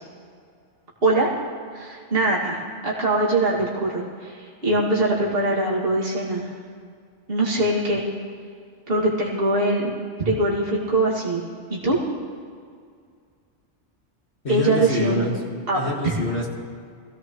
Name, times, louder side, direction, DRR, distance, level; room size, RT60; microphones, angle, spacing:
voice 1, 1.7-6.5 7.3-8.1 8.9-9.9 10.2-11.4 11.7-12.0 14.5-15.2 15.7-16.1, right 2 dB, 50° right, -5 dB, 2.5 m, -22 dB
voice 2, 14.4-15.3 15.7-16.5, left 1 dB, 65° left, -3 dB, 2.3 m, -26 dB
23.5 x 16.5 x 3.1 m, 2.2 s
omnidirectional pair, 1.2 m